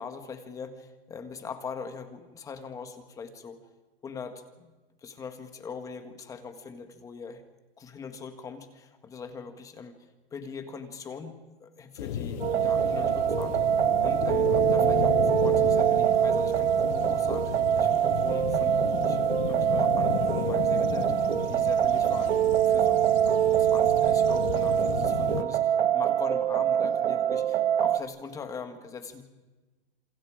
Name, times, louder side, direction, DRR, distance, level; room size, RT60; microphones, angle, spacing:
voice 1, 0.0-3.6 4.0-4.7 5.0-7.4 7.8-10.0 10.3-13.6 14.0-17.9 18.2-22.4 22.6-29.2, left 5 dB, 10° left, 8 dB, 1.6 m, -41 dB
sound 1, 12.0-25.4, left 9 dB, 45° left, 1.5 m, -33 dB
sound 2, 12.4-28.0, right 10 dB, 80° right, 1.8 m, -24 dB
30.0 x 28.0 x 5.1 m, 1.2 s
supercardioid pair, 175°, 32 cm